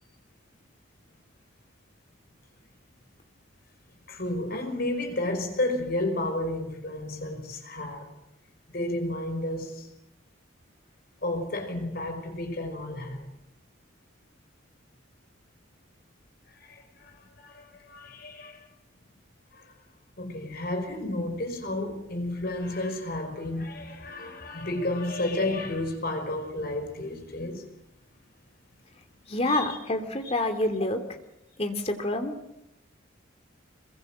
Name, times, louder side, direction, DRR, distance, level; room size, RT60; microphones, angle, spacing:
voice 1, 4.1-8.1 8.7-9.9 11.2-13.3 16.5-18.7 19.5-19.7 20.2-27.6 29.5-29.8, left 1 dB, 50° left, 5.5 m, -32 dB
voice 2, 29.3-31.0 31.6-32.3, left 2 dB, 30° left, 2.9 m, -27 dB
26.5 x 22.5 x 7.6 m
head